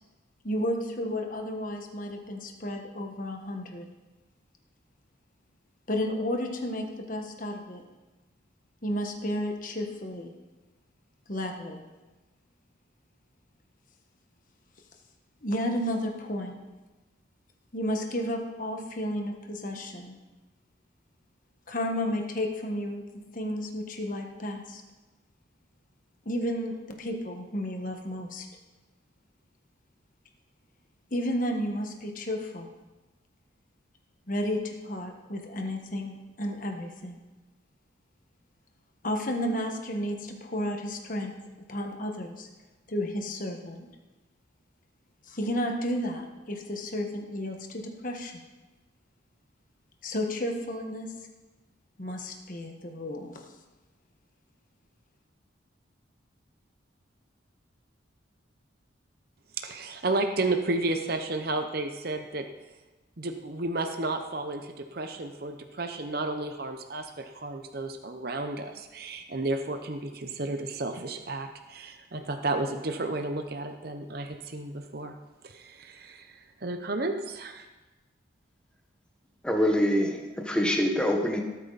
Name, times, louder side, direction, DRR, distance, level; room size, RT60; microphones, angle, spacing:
voice 1, 0.4-3.9 5.9-7.8 8.8-10.3 11.3-11.8 15.4-16.6 17.7-20.2 21.7-23.0 23.3-24.8 26.2-28.5 31.1-32.7 34.3-37.2 39.0-41.3 41.7-42.5 42.9-43.9 45.3-48.4 50.0-51.1 52.0-53.4, equal, 45° left, 3 dB, 1.5 m, -32 dB
voice 2, 59.6-62.4 63.2-75.2 75.4-77.7, right 2 dB, 50° right, 6 dB, 0.8 m, -32 dB
voice 3, 79.4-81.4, equal, 5° left, 2 dB, 1.3 m, -25 dB
18.0 x 8.8 x 4.1 m, 1.1 s
head